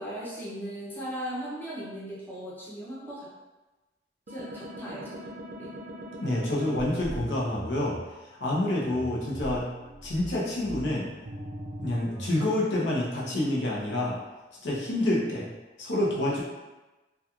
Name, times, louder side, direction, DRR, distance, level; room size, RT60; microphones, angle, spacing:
voice 1, 0.0-3.3 4.3-5.2 5.6-5.7, equal, 10° left, -8 dB, 0.6 m, -38 dB
sound 1, 4.3-8.0 8.8-12.4, right 1 dB, 45° right, 0.4 m, -40 dB
voice 2, 6.2-8.0 8.4-9.7 10.0-11.1 11.8-14.2 14.6-15.5 15.8-16.4, left 1 dB, 80° left, -5 dB, 0.7 m, -28 dB
2.9 x 2.3 x 2.4 m, 1.1 s
head